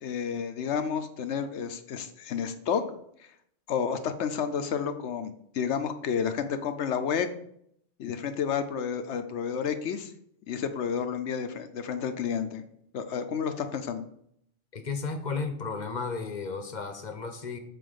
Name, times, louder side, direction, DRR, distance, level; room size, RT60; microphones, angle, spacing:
voice 1, 0.0-2.8 3.7-7.3 8.0-10.1 10.5-12.6 12.9-14.1, left 7 dB, 70° left, 8 dB, 0.9 m, -30 dB
voice 2, 14.7-17.6, left 4 dB, 40° left, 7 dB, 1.0 m, -33 dB
7.8 x 4.4 x 5.1 m, 0.71 s
omnidirectional pair, 1.3 m